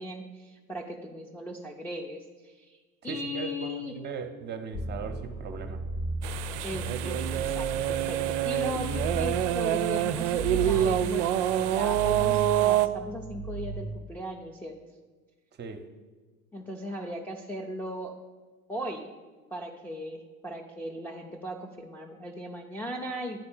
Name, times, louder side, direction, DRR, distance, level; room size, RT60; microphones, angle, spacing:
voice 1, 0.0-2.8 3.0-3.9 6.6-14.8 16.5-18.1 18.7-19.1 19.5-23.5, equal, 5° left, -4 dB, 0.5 m, -37 dB
voice 2, 3.1-5.8 15.6-15.8, right 5 dB, 25° right, 7 dB, 0.8 m, -38 dB
sound 1, 4.7-13.8, right 2 dB, 75° left, 2.4 m, -36 dB
sound 2, 6.2-12.9, right 12 dB, 55° right, 0.5 m, -26 dB
9.4 x 4.2 x 7.1 m, 1.4 s
figure-of-eight pair, 75°, 45 cm